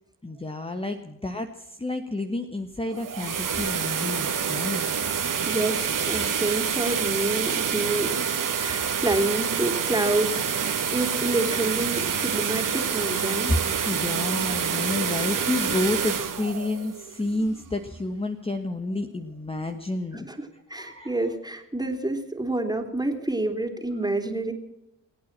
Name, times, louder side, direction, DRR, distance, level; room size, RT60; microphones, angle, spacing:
voice 1, 0.2-4.8 13.5-13.6 13.8-20.3 20.7-21.2, left 2 dB, 15° left, 6 dB, 1.5 m, -30 dB
sound 1, 2.8-17.7, right 7 dB, 55° right, 2.0 m, -27 dB
voice 2, 5.5-13.5 20.1-24.5, right 2 dB, 10° right, 4 dB, 3.3 m, -28 dB
22.0 x 8.7 x 7.5 m, 0.94 s
supercardioid pair, 50°, 39 cm